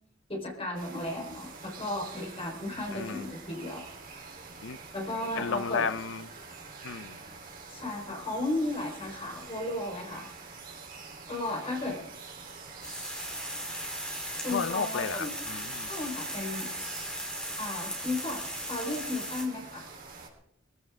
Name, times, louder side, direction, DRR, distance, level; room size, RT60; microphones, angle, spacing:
voice 1, 0.3-3.8 4.1-4.2 4.9-5.9 7.7-10.3 11.3-12.0 14.4-15.3 15.8-16.7 17.6-18.4 18.7-19.8, left 2 dB, 30° left, 1 dB, 4.3 m, -34 dB
sound 1, 0.7-20.3, right 4 dB, 45° right, 3.5 m, -46 dB
voice 2, 2.9-3.3 4.6-4.8 5.4-6.3 6.8-7.2 14.5-15.9, left 5 dB, 75° left, 15 dB, 0.6 m, -33 dB
sound 2, 12.8-19.4, equal, 5° left, 3.1 m, -37 dB
21.5 x 15.5 x 3.6 m, 0.72 s
head